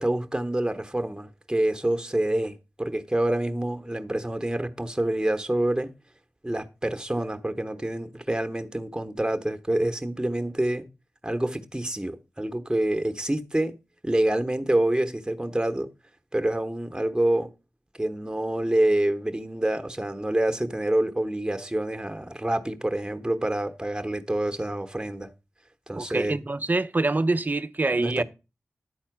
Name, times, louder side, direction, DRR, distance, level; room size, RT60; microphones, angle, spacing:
voice 1, 0.0-5.9 6.4-10.9 11.2-13.7 14.0-15.9 16.3-17.5 18.0-25.3 25.9-26.3 27.9-28.2, right 1 dB, 15° right, 1.0 m, -27 dB
voice 2, 25.9-28.2, right 2 dB, 35° right, 0.5 m, -25 dB
10.0 x 4.3 x 5.9 m
cardioid pair, 40°, 5 cm